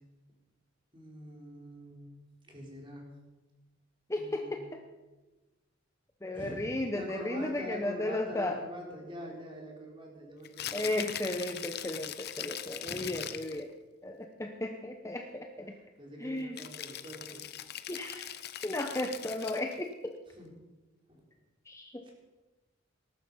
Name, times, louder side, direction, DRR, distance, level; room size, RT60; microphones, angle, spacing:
voice 1, 0.9-2.1 2.5-3.1 4.1-4.6 6.3-10.9 12.8-13.1 15.7-17.5 20.3-20.5 21.1-21.2 22.0-22.1, equal, 25° right, -1 dB, 4.0 m, -45 dB
voice 2, 4.1-4.6 6.2-8.6 10.7-13.7 14.0-15.7 16.2-16.6 17.9-18.3 18.6-20.1 21.7-22.1, left 1 dB, 15° left, 4 dB, 0.8 m, -35 dB
Rattle (instrument), 10.4-13.6 16.6-19.8, left 11 dB, 50° left, 0.7 m, -41 dB
19.0 x 11.5 x 5.5 m, 1.2 s
head